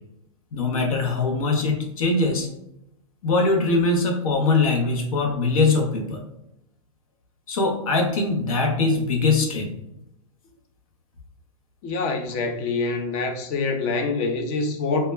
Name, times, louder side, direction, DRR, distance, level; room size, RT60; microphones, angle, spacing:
voice 1, 0.5-2.5 3.2-6.2 7.5-9.7, left 3 dB, 75° left, 0.7 m, -22 dB
voice 2, 11.8-15.1, left 3 dB, 35° left, 0.4 m, -25 dB
2.2 x 2.0 x 3.2 m
hypercardioid pair, 135°, 18 cm